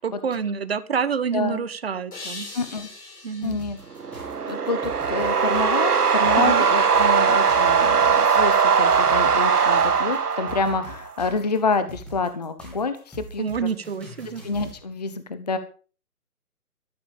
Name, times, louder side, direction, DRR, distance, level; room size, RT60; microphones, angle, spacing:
voice 1, 0.0-2.5 3.2-3.6 6.4-6.6 13.4-14.4, right 6 dB, 40° right, 14 dB, 1.3 m, -27 dB
sound 1, 2.1-5.3, left 2 dB, 80° left, 7.5 m, -42 dB
voice 2, 2.5-2.9 3.4-3.8 4.5-13.7 14.4-15.6, left 4 dB, 25° left, 11 dB, 0.8 m, -28 dB
sound 2, 3.4-14.8, right 1 dB, ahead, 2.3 m, -43 dB
sound 3, 4.0-11.1, right 6 dB, 85° right, 1.8 m, -20 dB
13.5 x 12.0 x 5.1 m, 0.38 s
hypercardioid pair, 170°, 45 cm